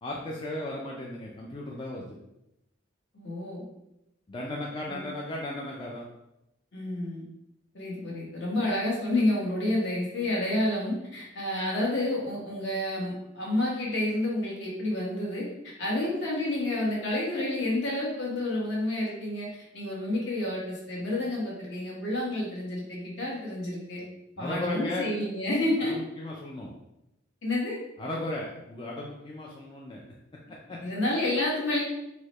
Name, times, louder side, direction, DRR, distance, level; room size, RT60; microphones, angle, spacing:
voice 1, 0.0-2.2 4.3-6.0 24.4-25.1 25.8-26.7 28.0-30.0 30.5-30.8, left 1 dB, 25° left, -3 dB, 0.3 m, -36 dB
voice 2, 3.1-3.6 4.9-5.0 6.7-7.3 7.7-15.5 15.8-24.0 24.4-25.9 27.4-27.8 30.8-31.8, left 1 dB, 60° left, -4 dB, 1.2 m, -29 dB
4.5 x 2.1 x 3.0 m, 0.87 s
head